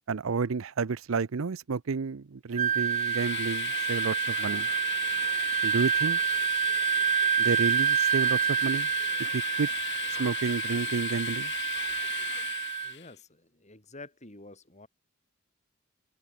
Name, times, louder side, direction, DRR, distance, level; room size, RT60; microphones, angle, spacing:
voice 1, 0.1-4.7 5.6-6.2 7.4-8.9 9.2-9.7 10.2-11.5, right 5 dB, 90° right, 0.6 m, -30 dB
Wind instrument woodwind instrument, 2.5-12.9, right 8 dB, 40° right, 0.7 m, -28 dB
Train, 2.6-13.1, left 11 dB, 60° left, 1.7 m, -37 dB
voice 2, 12.8-14.9, left 2 dB, 35° left, 7.8 m, -49 dB
open air
head